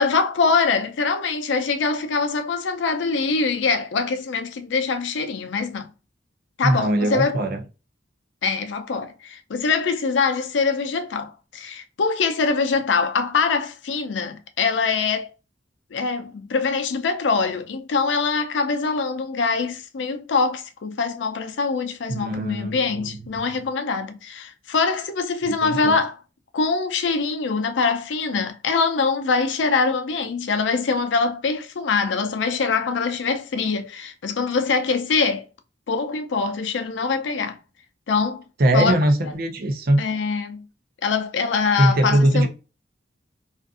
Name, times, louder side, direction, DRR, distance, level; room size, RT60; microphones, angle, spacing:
voice 1, 0.0-5.9 6.6-7.4 8.4-15.3 15.9-26.2 26.5-35.4 35.9-37.6 38.1-38.4 38.7-38.9 39.2-39.3 40.0-40.6 41.0-42.5, left 4 dB, 85° left, 0.5 m, -23 dB
voice 2, 6.6-7.6 22.1-23.6 25.6-25.9 38.6-40.0 41.8-42.5, right 1 dB, 55° right, 0.6 m, -21 dB
2.5 x 2.5 x 2.4 m
head